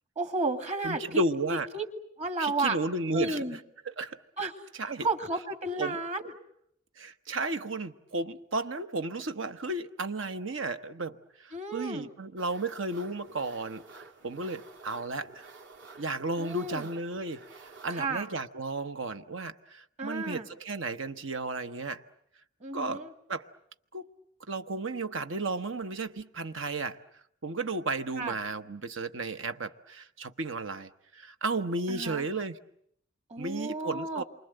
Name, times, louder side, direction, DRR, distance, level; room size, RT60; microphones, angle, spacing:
voice 1, 0.2-1.2 1.7-1.9 2.2-2.8 3.1-3.6 4.4-4.5 5.0-6.3 11.5-12.1 16.4-16.9 17.9-18.3 20.0-20.5 22.6-23.1 28.2-28.3 31.9-32.2 33.3-34.2, right 2 dB, 35° right, 2.0 m, -32 dB
voice 2, 0.8-1.7 2.4-3.6 3.9-4.2 4.7-5.1 5.8-6.0 7.0-15.5 16.0-22.0 22.7-23.5 23.9-24.1 24.5-32.6 33.4-34.2, right 3 dB, 85° right, 1.1 m, -34 dB
sound 1, 12.4-18.1, right 3 dB, 65° right, 2.9 m, -51 dB
28.0 x 24.5 x 7.8 m
head